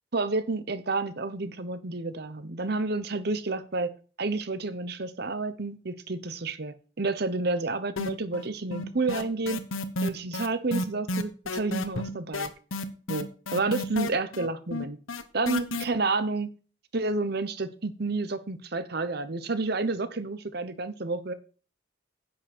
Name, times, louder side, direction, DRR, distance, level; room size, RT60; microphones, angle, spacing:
voice 1, 0.1-3.9 4.2-9.6 10.0-12.5 13.1-15.0 15.3-16.5 16.9-21.3, right 3 dB, 50° right, 13 dB, 0.9 m, -30 dB
sound 1, 8.0-8.5 8.7-15.8, left 2 dB, 85° left, 1.0 m, -31 dB
10.5 x 7.7 x 4.3 m, 0.39 s
head